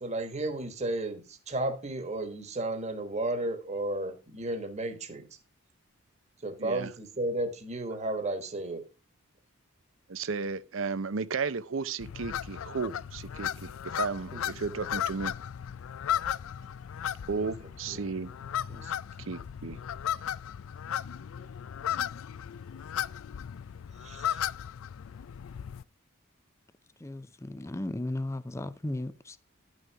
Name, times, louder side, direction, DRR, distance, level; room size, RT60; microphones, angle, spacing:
voice 1, 0.0-5.2 6.4-8.8 14.3-14.4 17.4-17.5 17.9-18.1 18.7-18.9 19.2-19.3 24.0-24.4, right 2 dB, 30° right, 1.4 m, -33 dB
voice 2, 6.6-6.9 10.1-15.3 17.3-18.3 19.2-19.8, right 4 dB, 65° right, 0.6 m, -34 dB
sound 1, 12.0-25.8, left 10 dB, 70° left, 0.4 m, -35 dB
voice 3, 27.0-29.4, left 1 dB, 15° left, 0.5 m, -35 dB
10.5 x 6.4 x 4.6 m
head